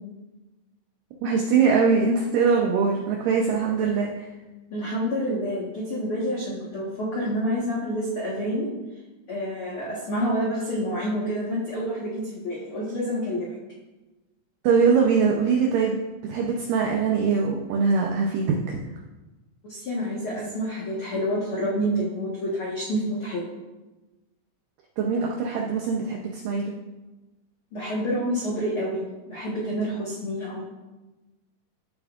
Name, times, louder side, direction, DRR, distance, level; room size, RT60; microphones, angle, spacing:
voice 1, 1.2-4.1 14.6-18.8 25.0-26.7, right 5 dB, 85° right, 0 dB, 1.9 m, -22 dB
voice 2, 4.7-8.7 9.3-13.5 19.7-23.5 25.2-25.3 27.7-30.6, equal, 80° left, -5 dB, 1.2 m, -28 dB
14.5 x 7.2 x 2.5 m, 1.1 s
omnidirectional pair, 4.8 m